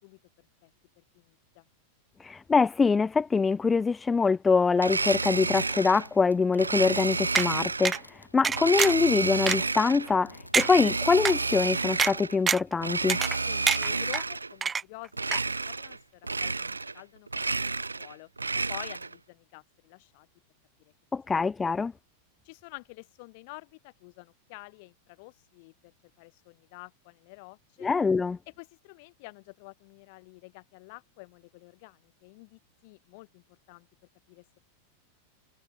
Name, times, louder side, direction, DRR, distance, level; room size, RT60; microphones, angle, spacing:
voice 1, 0.0-0.7 1.0-1.6 13.4-18.3 18.5-20.3 20.8-20.9 22.4-27.9 28.5-33.9 34.3-34.6, left 28 dB, 45° left, 3.6 m, -49 dB
voice 2, 2.2-13.2 21.1-21.9 27.8-28.4, left 4 dB, 15° left, 0.6 m, -24 dB
Domestic sounds home sounds, 4.8-6.1 6.6-8.0 8.5-10.1 10.5-12.4 12.8-14.5 15.1-16.0 16.2-17.0 17.3-19.1, right 3 dB, 80° right, 0.6 m, -30 dB
Fireworks, 4.9-13.0, equal, 90° left, 6.3 m, -52 dB
sound 1, 7.3-7.5 7.8-8.0 8.4-9.0 9.5-9.6 10.1-10.2 10.5-10.7 11.2-11.3 12.0-12.1 12.5-12.7 13.1-13.4 13.7-14.2 14.6-15.1 15.3-15.4, right 5 dB, 15° right, 1.3 m, -25 dB
figure-of-eight pair, 90°, 0 cm